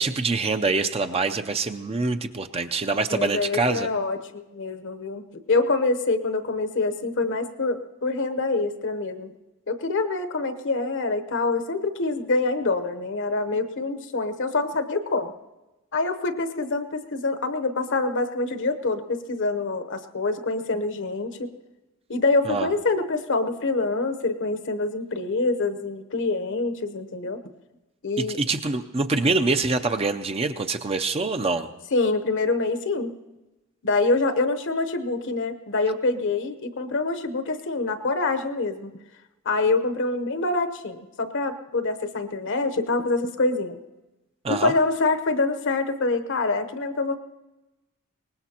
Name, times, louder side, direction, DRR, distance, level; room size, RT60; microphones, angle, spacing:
voice 1, 0.0-3.9 22.5-22.7 28.2-31.7 44.4-44.7, right 3 dB, 25° right, 7 dB, 0.5 m, -25 dB
voice 2, 3.1-5.2 5.5-9.3 9.7-15.3 15.9-21.5 22.1-27.4 28.0-28.4 31.9-33.1 33.8-39.0 39.4-43.8 44.5-47.1, left 3 dB, 55° left, 9 dB, 0.9 m, -25 dB
23.0 x 19.5 x 2.9 m, 1.1 s
head